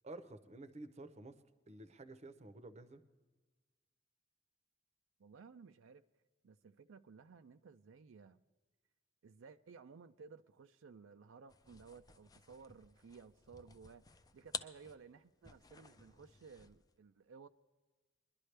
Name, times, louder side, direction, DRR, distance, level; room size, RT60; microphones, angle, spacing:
voice 1, 0.0-1.4 1.7-3.0, right 2 dB, 35° right, 0.7 m, -51 dB
voice 2, 5.2-6.0 6.4-8.4 9.2-17.5, right 5 dB, 80° right, 0.4 m, -57 dB
sound 1, 11.5-16.9, left 5 dB, 20° left, 0.4 m, -51 dB
21.5 x 11.5 x 3.3 m
head